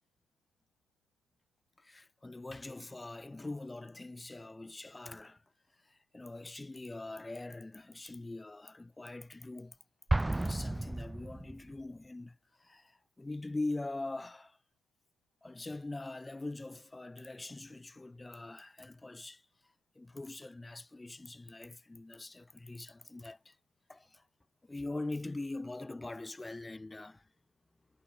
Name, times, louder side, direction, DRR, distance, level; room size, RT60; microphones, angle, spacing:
voice 1, 1.8-5.4 5.8-9.8 10.3-14.6 15.4-19.4 19.9-23.6 23.9-24.2 24.6-27.3, left 2 dB, 15° left, 6.4 m, -43 dB
Explosion, 10.1-11.9, right 2 dB, 10° right, 0.4 m, -32 dB
supercardioid pair, 80°, 0 cm